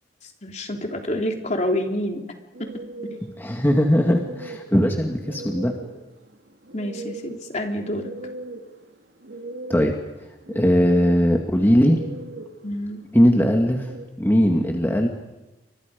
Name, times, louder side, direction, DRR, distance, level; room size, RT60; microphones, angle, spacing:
voice 1, 0.4-2.2 6.7-8.1 12.6-13.0, left 1 dB, 45° left, 2 dB, 3.4 m, -27 dB
sound 1, 2.5-14.1, right 2 dB, 90° right, 3.1 m, -39 dB
voice 2, 3.4-5.7 9.7-9.9 10.5-12.0 13.1-13.9 14.2-15.1, equal, 15° left, 2 dB, 2.0 m, -19 dB
29.5 x 25.5 x 5.2 m, 1.0 s
head